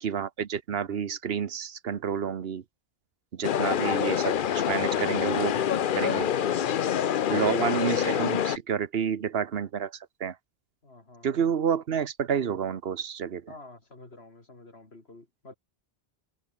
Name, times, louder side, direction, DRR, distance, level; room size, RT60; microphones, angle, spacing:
voice 1, 0.0-2.6 3.3-5.6 5.9-6.3 7.3-10.4 11.2-13.5, right 7 dB, 70° right, 1.1 m, -29 dB
sound 1, 3.4-8.6, left 9 dB, 60° left, 0.8 m, -26 dB
voice 2, 6.3-7.6 10.8-11.5 13.5-15.5, left 2 dB, 80° left, 4.1 m, -48 dB
omnidirectional pair, 1.1 m